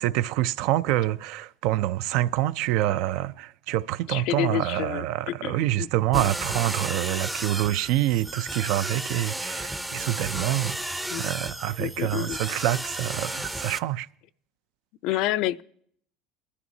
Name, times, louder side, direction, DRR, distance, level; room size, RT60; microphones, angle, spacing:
voice 1, 0.0-10.8 11.2-14.1, right 15 dB, 70° right, 0.4 m, -26 dB
voice 2, 4.1-5.9 6.1-6.3 11.1-11.3 11.8-12.4 15.0-15.6, left 14 dB, 65° left, 0.4 m, -29 dB
sound 1, 6.1-13.8, right 1 dB, 10° right, 0.5 m, -33 dB
20.0 x 12.5 x 2.7 m
supercardioid pair, 120°, 0 cm